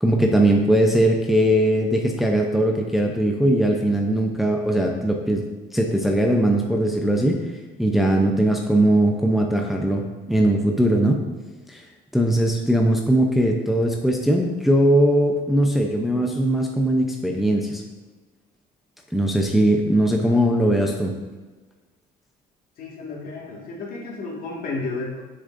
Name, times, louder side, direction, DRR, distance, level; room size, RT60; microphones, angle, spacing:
voice 1, 0.0-5.4 5.7-7.4 7.8-11.2 11.7-11.8 12.1-17.8 19.1-21.1, right 1 dB, ahead, 1 dB, 0.7 m, -20 dB
voice 2, 22.8-25.2, left 3 dB, 55° left, -2 dB, 1.9 m, -32 dB
7.8 x 6.6 x 2.6 m, 1.3 s
cardioid pair, 110°, 17 cm